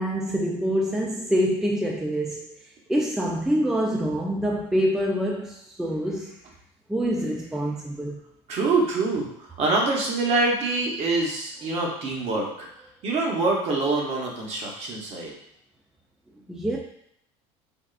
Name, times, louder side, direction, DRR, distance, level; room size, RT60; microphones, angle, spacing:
voice 1, 0.0-2.5 2.9-6.4 6.9-8.2 16.5-16.8, equal, 5° right, -2 dB, 0.4 m, -26 dB
voice 2, 8.5-12.7 13.0-15.3, right 3 dB, 50° right, -1 dB, 0.9 m, -25 dB
3.5 x 2.4 x 2.4 m, 0.71 s
supercardioid pair, 110°, 14 cm